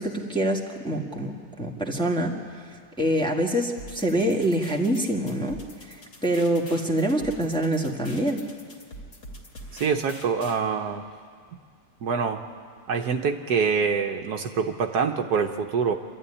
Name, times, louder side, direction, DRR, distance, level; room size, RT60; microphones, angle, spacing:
voice 1, 0.0-2.4 3.0-5.6 5.9-8.4, right 1 dB, 5° left, 0 dB, 1.6 m, -25 dB
sound 1, 3.8-10.6, equal, 50° left, 2.7 m, -45 dB
voice 2, 9.7-11.0 12.0-12.5 12.9-15.9, right 6 dB, 65° right, 5 dB, 1.4 m, -25 dB
26.5 x 13.5 x 9.9 m, 2.1 s
omnidirectional pair, 1.9 m